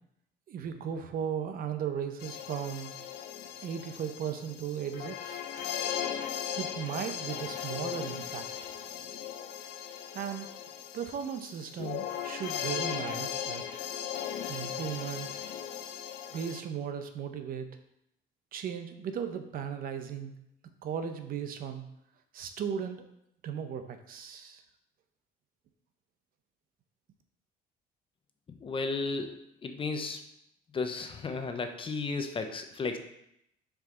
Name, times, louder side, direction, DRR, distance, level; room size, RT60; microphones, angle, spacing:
voice 1, 0.5-2.9 3.6-5.4 6.6-8.5 10.1-10.5 10.9-13.6 14.5-15.3 16.3-17.7 18.5-20.4 20.8-21.8 22.3-23.0 23.4-24.6, right 8 dB, 60° right, 8 dB, 0.8 m, -36 dB
sound 1, 2.2-16.6, left 9 dB, 75° left, 0.6 m, -38 dB
voice 2, 28.6-29.3 29.6-30.2 30.7-33.0, left 4 dB, 30° left, 7 dB, 0.7 m, -33 dB
6.5 x 4.8 x 3.8 m, 0.78 s
cardioid pair, 110°, 17 cm